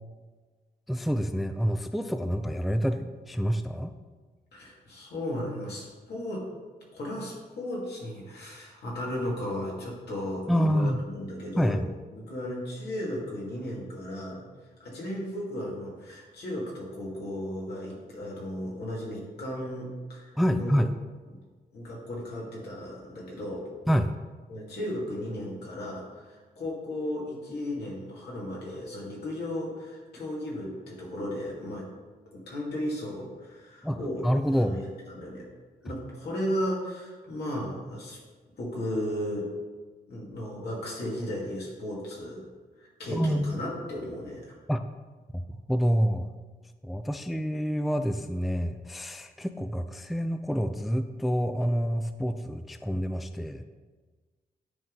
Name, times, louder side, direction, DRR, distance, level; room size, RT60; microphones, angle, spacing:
voice 1, 0.9-3.9 10.5-11.0 11.6-11.9 20.4-20.9 23.9-24.1 33.8-34.0 34.2-34.8 43.1-43.6 44.7-44.8 45.3-45.4 45.7-46.3 46.8-53.6, equal, ahead, 8 dB, 0.3 m, -27 dB
voice 2, 4.5-6.5 6.9-11.8 12.1-14.5 14.8-20.8 21.3-21.4 21.7-23.7 24.5-31.9 32.3-34.3 34.5-35.5 35.8-38.2 38.6-39.5 40.1-42.5 42.8-44.6, left 1 dB, 80° left, -4 dB, 2.2 m, -35 dB
9.3 x 3.8 x 3.9 m, 1.4 s
cardioid pair, 75°, 17 cm